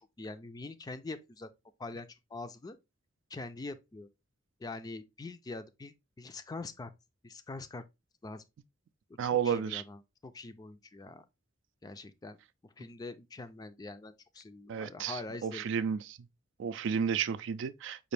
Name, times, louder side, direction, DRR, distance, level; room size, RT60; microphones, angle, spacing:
voice 1, 0.0-1.5 1.8-2.8 3.3-4.1 4.6-6.9 7.2-7.8 8.2-8.4 9.4-11.2 11.8-12.4 12.6-15.6, left 3 dB, 20° left, 0.3 m, -44 dB
voice 2, 9.2-9.8 14.7-16.2 16.6-18.1, right 7 dB, 65° right, 0.3 m, -32 dB
5.1 x 2.5 x 3.2 m
head